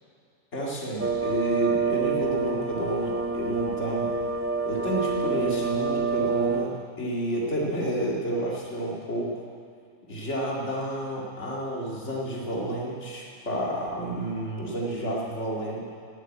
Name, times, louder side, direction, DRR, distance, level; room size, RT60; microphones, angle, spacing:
voice 1, 0.5-4.1 4.7-9.5 10.1-15.9, right 1 dB, 60° left, -4 dB, 2.5 m, -30 dB
sound 1, 1.0-6.7, right 4 dB, 20° right, 0.3 m, -27 dB
17.0 x 7.6 x 8.7 m, 2.4 s
omnidirectional pair, 1.4 m